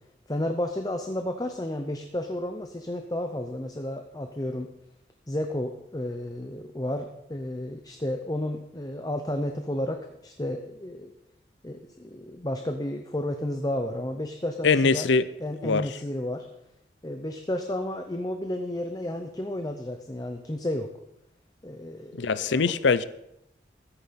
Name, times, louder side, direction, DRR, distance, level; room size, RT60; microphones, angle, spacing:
voice 1, 0.3-4.7 5.3-11.1 11.6-15.1 15.4-16.4 17.0-20.9 21.6-22.6, left 1 dB, 20° left, 5 dB, 0.6 m, -32 dB
voice 2, 14.6-15.3 15.6-16.0 22.1-23.0, left 4 dB, 85° left, 16 dB, 0.6 m, -22 dB
14.0 x 10.0 x 4.2 m, 0.82 s
head